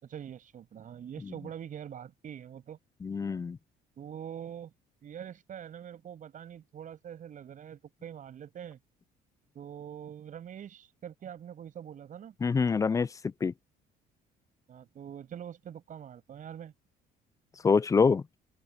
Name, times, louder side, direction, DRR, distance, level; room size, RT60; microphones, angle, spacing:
voice 1, 0.0-2.8 4.0-4.7 5.0-8.8 9.5-12.3 14.7-16.7, right 9 dB, 50° right, 6.5 m, -44 dB
voice 2, 3.0-3.6 12.4-13.5 17.6-18.2, left 5 dB, 20° left, 0.3 m, -26 dB
open air
cardioid pair, 110°, 17 cm